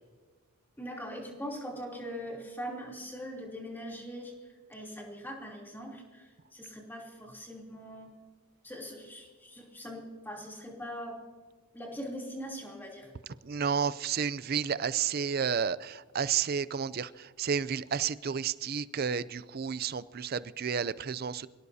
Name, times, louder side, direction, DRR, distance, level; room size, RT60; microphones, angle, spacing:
voice 1, 0.8-8.1 8.6-11.2 11.7-13.1, equal, 10° left, -2 dB, 3.1 m, -42 dB
voice 2, 13.4-21.5, right 7 dB, 45° right, 17 dB, 0.4 m, -31 dB
26.5 x 17.5 x 2.8 m, 1.5 s
head